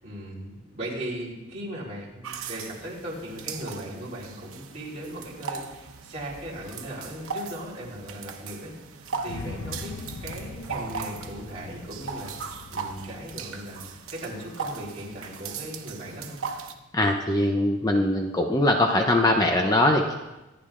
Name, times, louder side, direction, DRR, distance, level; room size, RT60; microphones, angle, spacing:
voice 1, 0.0-8.7 9.2-13.8 14.1-16.4, right 1 dB, 30° right, -5 dB, 3.8 m, -38 dB
sound 1, 2.2-16.7, right 5 dB, 85° right, 1.0 m, -38 dB
sound 2, 9.2-15.4, left 3 dB, 80° left, 0.7 m, -42 dB
voice 2, 16.9-20.1, left 1 dB, 20° left, 3 dB, 0.6 m, -22 dB
25.5 x 10.0 x 2.5 m, 1.1 s
head